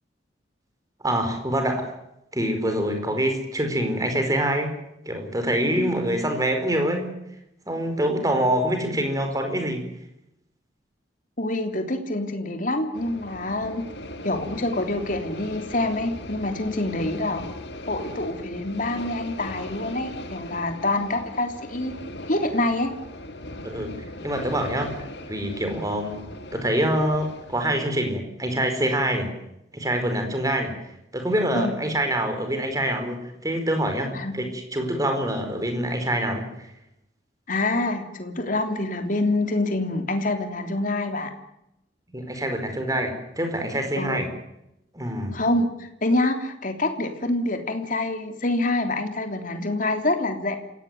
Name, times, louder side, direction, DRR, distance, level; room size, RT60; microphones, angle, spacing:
voice 1, 1.0-1.9 2.3-4.7 5.0-7.1 7.7-9.8 23.6-24.9 25.3-26.2 26.5-29.3 29.7-30.7 31.1-36.7 42.1-44.3 44.9-45.4, right 1 dB, 20° right, 5 dB, 4.9 m, -25 dB
voice 2, 11.4-13.8 14.2-17.5 17.9-21.9 22.3-22.9 31.5-31.7 34.1-34.3 37.5-41.3 44.0-44.2 45.3-50.6, left 2 dB, 45° left, 6 dB, 3.3 m, -26 dB
sound 1, 12.9-27.7, left 1 dB, 65° left, 2.1 m, -39 dB
28.0 x 17.0 x 9.5 m, 0.84 s
head